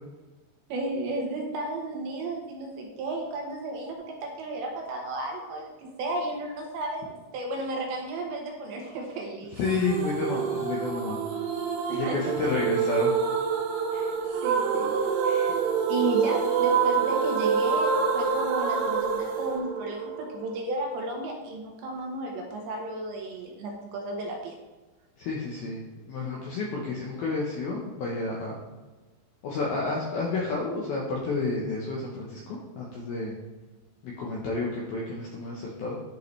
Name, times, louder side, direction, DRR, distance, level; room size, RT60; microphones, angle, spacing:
voice 1, 0.7-9.6 11.9-12.5 13.9-14.1 14.4-14.9 15.2-15.5 15.9-24.5, right 2 dB, 70° right, 0 dB, 3.1 m, -33 dB
voice 2, 9.5-11.2 11.9-13.2 25.2-28.6 29.4-33.4 34.0-36.0, left 3 dB, 75° left, -3 dB, 2.2 m, -30 dB
sound 1, 9.6-20.6, right 6 dB, 90° right, 3.6 m, -27 dB
11.0 x 5.5 x 3.3 m, 1.2 s
omnidirectional pair, 5.7 m